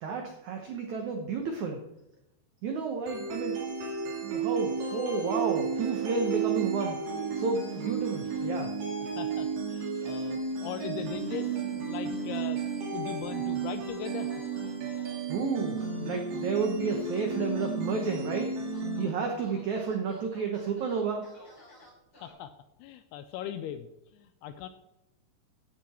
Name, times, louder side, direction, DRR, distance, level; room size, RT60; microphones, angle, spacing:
voice 1, 0.0-1.8 2.6-3.5 4.2-7.0 7.4-8.7 15.3-18.5 19.0-21.3, right 5 dB, 80° right, 3 dB, 1.7 m, -31 dB
sound 1, 3.1-19.1, right 5 dB, 55° right, 3.7 m, -33 dB
sound 2, 4.8-5.3 5.7-6.5 7.3-7.9 8.2-8.5 9.9-10.3 10.6-11.5 12.1-12.7 13.5-15.2 15.8-16.5 16.9-17.2 17.6-18.4 18.7-19.1 19.4-22.3, left 1 dB, 30° left, 6.0 m, -56 dB
voice 2, 9.0-12.6 12.9-14.3 22.2-22.5 22.8-24.7, left 10 dB, 80° left, 10 dB, 2.4 m, -39 dB
15.5 x 8.8 x 4.3 m, 0.92 s
omnidirectional pair, 5.1 m